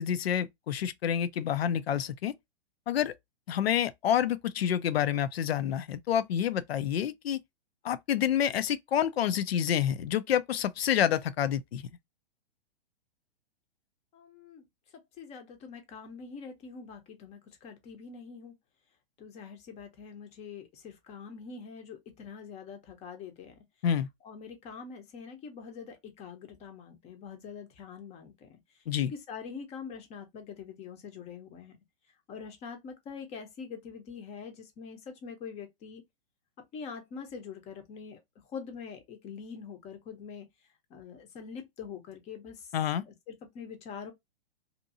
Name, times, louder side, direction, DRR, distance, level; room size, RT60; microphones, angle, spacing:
voice 1, 0.0-2.3 2.9-3.1 3.5-7.4 7.8-11.8 23.8-24.1 28.9-29.1 42.7-43.0, left 9 dB, 70° left, 0.5 m, -28 dB
voice 2, 14.1-14.7 15.2-18.5 19.2-23.5 24.2-28.6 29.0-31.8 32.3-36.0 36.7-38.2 38.5-40.5 40.9-42.7 43.0-44.1, left 6 dB, 20° left, 0.7 m, -44 dB
2.7 x 2.6 x 2.4 m
figure-of-eight pair, 115°, 32 cm